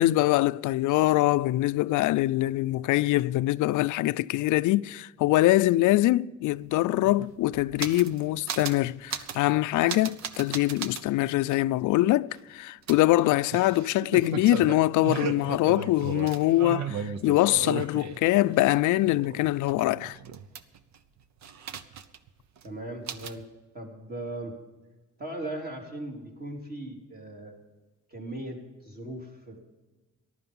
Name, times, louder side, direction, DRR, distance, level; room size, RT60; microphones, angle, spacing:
voice 1, 0.0-20.2, left 16 dB, 85° left, 0.4 m, -24 dB
sound 1, 6.5-6.6 6.8-8.2 8.5-8.8 9.1-9.5 9.9-11.0 11.5-11.6 12.9-18.6 19.0-21.0 21.4-22.3 22.6-22.7 23.1-23.4, right 8 dB, 65° right, 0.9 m, -36 dB
voice 2, 22.6-23.4 23.7-24.6 25.2-27.5 28.1-29.6, right 1 dB, 30° right, 3.8 m, -38 dB
14.5 x 11.5 x 5.5 m
cardioid pair, 90°, 30 cm